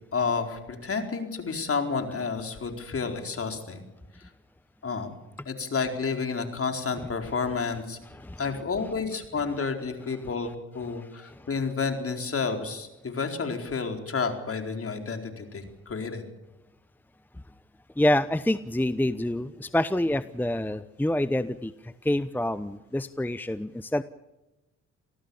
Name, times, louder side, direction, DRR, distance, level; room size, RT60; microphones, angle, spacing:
voice 1, 0.1-3.8 4.2-4.3 4.8-5.2 5.5-8.0 8.4-16.2, left 5 dB, 45° left, 5 dB, 4.5 m, -30 dB
voice 2, 8.1-8.4 10.9-11.5 18.0-24.0, left 1 dB, 5° left, 14 dB, 0.9 m, -27 dB
27.5 x 18.0 x 7.2 m, 0.98 s
supercardioid pair, 55°, 31 cm